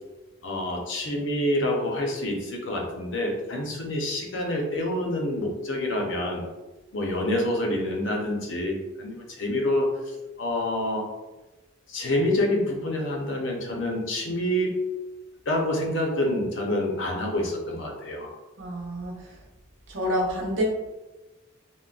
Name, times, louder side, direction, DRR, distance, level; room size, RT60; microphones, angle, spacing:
voice 1, 0.4-6.4 6.9-11.1 11.9-14.8 15.5-18.3, left 1 dB, 65° left, 1 dB, 0.6 m, -27 dB
voice 2, 18.6-19.4 19.9-20.6, equal, 70° right, -3 dB, 0.8 m, -28 dB
3.7 x 2.0 x 2.3 m, 1.1 s
head